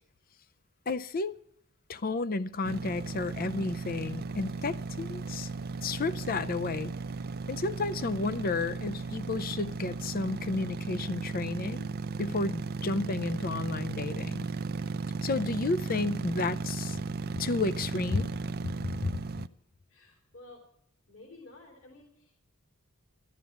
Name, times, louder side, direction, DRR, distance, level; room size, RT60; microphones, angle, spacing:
voice 1, 0.9-1.4 1.9-5.5 5.8-6.9 7.5-11.9 12.2-14.5 15.2-17.0 17.4-18.3 18.6-19.1, left 3 dB, 40° left, 0.6 m, -32 dB
sound 1, 2.6-19.5, right 3 dB, 45° right, 0.5 m, -36 dB
voice 2, 19.9-20.6 21.1-22.4, left 2 dB, 65° left, 3.3 m, -52 dB
14.0 x 12.5 x 7.2 m
head